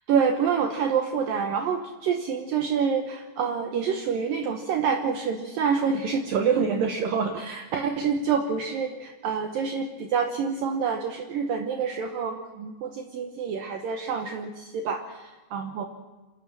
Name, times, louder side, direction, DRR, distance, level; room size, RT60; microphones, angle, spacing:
voice 1, 0.1-15.8, right 6 dB, 70° right, 4 dB, 2.3 m, -27 dB
28.5 x 13.0 x 7.4 m, 1.2 s
omnidirectional pair, 5.1 m